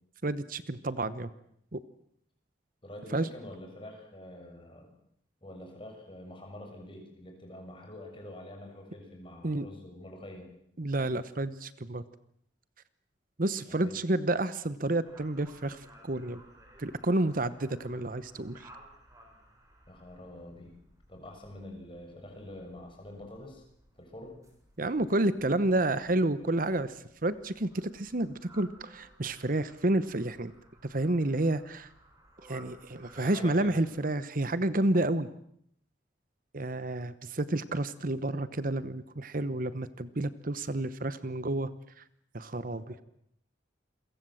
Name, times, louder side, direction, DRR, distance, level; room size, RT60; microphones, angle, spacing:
voice 1, 0.2-1.3 1.7-1.8 3.1-3.3 9.4-9.6 10.8-12.0 13.4-16.4 16.8-18.7 24.8-30.5 30.8-31.9 32.5-35.3 36.5-41.7 42.0-42.1 42.3-43.0, right 2 dB, 50° right, 14 dB, 1.0 m, -30 dB
voice 2, 2.8-4.9 5.4-10.5 13.7-14.0 19.9-20.8 21.1-23.6 24.0-24.4 33.1-33.8 42.9-43.0, left 1 dB, 30° left, 2 dB, 7.2 m, -46 dB
sound 1, 15.0-34.1, right 1 dB, 20° right, 7.4 m, -58 dB
28.5 x 23.0 x 7.8 m, 0.72 s
head